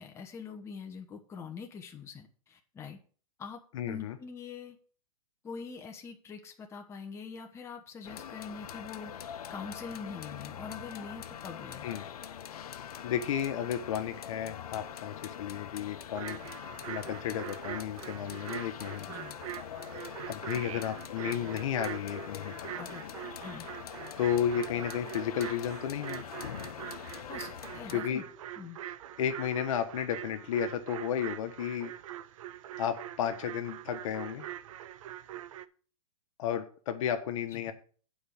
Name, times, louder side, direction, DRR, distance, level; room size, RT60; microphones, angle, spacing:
voice 1, 0.0-3.0 3.4-4.8 5.4-9.1 9.5-11.9 19.1-19.3 20.5-20.8 22.8-23.0 23.4-23.7 27.3-28.2 28.6-28.8 37.5-37.7, left 5 dB, 15° left, 3 dB, 1.2 m, -44 dB
voice 2, 3.7-4.2 11.8-12.0 13.0-16.4 16.8-19.1 20.3-22.7 24.2-26.2 27.9-28.2 29.2-31.9 32.8-34.5 36.4-37.7, left 9 dB, 60° left, 8 dB, 1.4 m, -33 dB
sound 1, 8.0-27.9, left 9 dB, 80° left, 0.9 m, -43 dB
sound 2, 16.1-35.7, right 12 dB, 60° right, 0.7 m, -43 dB
8.7 x 4.9 x 7.1 m, 0.42 s
hypercardioid pair, 145°, 19 cm